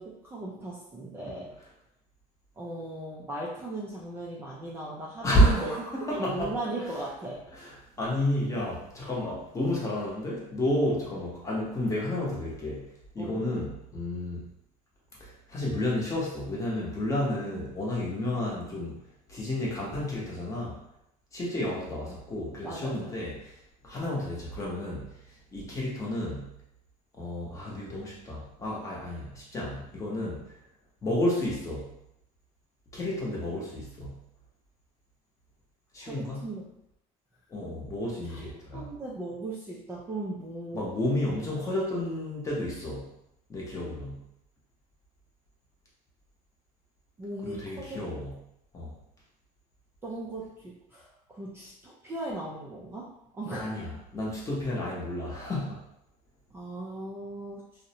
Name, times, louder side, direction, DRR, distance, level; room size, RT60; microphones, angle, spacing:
voice 1, 0.0-1.5 2.6-7.4 13.2-13.4 22.0-22.2 22.6-23.2 36.0-36.7 38.2-40.9 47.2-48.0 50.0-53.7 56.5-57.6, right 2 dB, 15° right, -5 dB, 0.3 m, -38 dB
voice 2, 5.2-6.6 7.5-12.9 13.1-14.4 15.2-19.0 19.3-20.8 21.3-23.5 23.8-25.1 25.5-26.5 27.2-30.4 31.0-31.9 32.9-34.2 35.9-36.5 37.5-38.9 40.7-43.1 43.5-44.2 47.4-48.4 48.7-48.9 53.6-55.8, left 1 dB, 20° left, -5 dB, 0.8 m, -31 dB
2.5 x 2.0 x 2.7 m, 0.80 s
cardioid pair, 140°, 16 cm